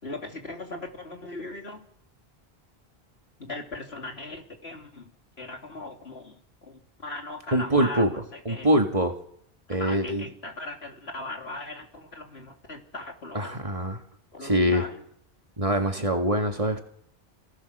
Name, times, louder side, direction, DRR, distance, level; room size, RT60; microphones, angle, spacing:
voice 1, 0.0-1.8 3.4-5.1 5.4-8.7 9.7-13.6 14.3-15.0, left 2 dB, 80° left, 2 dB, 3.2 m, -39 dB
voice 2, 7.5-8.1 8.5-9.2 9.7-10.2 13.4-14.0 14.4-14.8 15.6-16.8, right 1 dB, 35° right, 4 dB, 1.9 m, -24 dB
28.0 x 17.0 x 6.6 m, 0.70 s
omnidirectional pair, 1.0 m